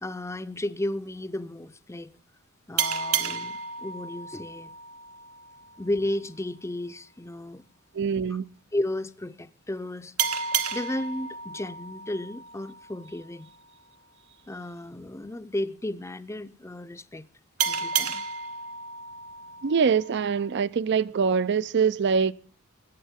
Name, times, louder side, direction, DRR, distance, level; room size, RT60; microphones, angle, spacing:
voice 1, 0.0-2.1 2.7-4.7 5.8-7.6 8.7-10.1 10.7-13.5 14.5-17.3 17.7-18.2, left 1 dB, 15° left, 0.6 m, -33 dB
sound 1, 2.8-6.0 10.2-13.4 17.6-20.5, right 7 dB, 75° right, 1.0 m, -32 dB
voice 2, 7.9-8.4 19.6-22.3, right 6 dB, 55° right, 0.5 m, -24 dB
21.5 x 9.5 x 3.6 m
head